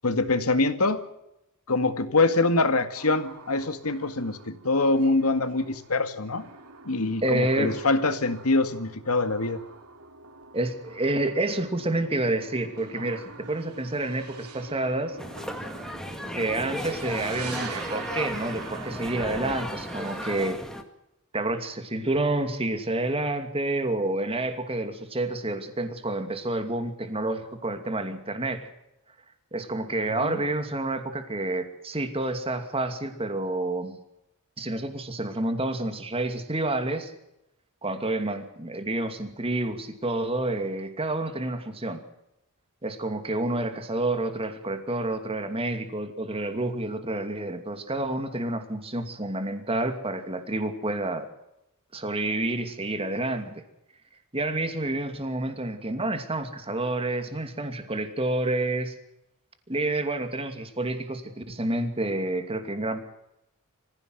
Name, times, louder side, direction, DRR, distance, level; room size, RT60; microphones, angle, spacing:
voice 1, 0.0-1.0 1.7-6.4 6.9-9.6 30.2-30.4, left 3 dB, 80° left, 10 dB, 2.0 m, -24 dB
sound 1, 2.9-20.4, right 4 dB, 85° right, 2.9 m, -44 dB
voice 2, 7.2-7.8 10.5-15.2 16.3-20.6 21.3-28.7 29.5-34.0 34.6-37.1 37.8-42.0 42.8-51.3 51.9-53.6 54.3-59.0 59.7-63.0, right 2 dB, 25° right, 7 dB, 2.6 m, -29 dB
sound 2, 15.2-20.8, equal, 5° left, 2.0 m, -35 dB
24.0 x 16.0 x 8.0 m, 0.86 s
head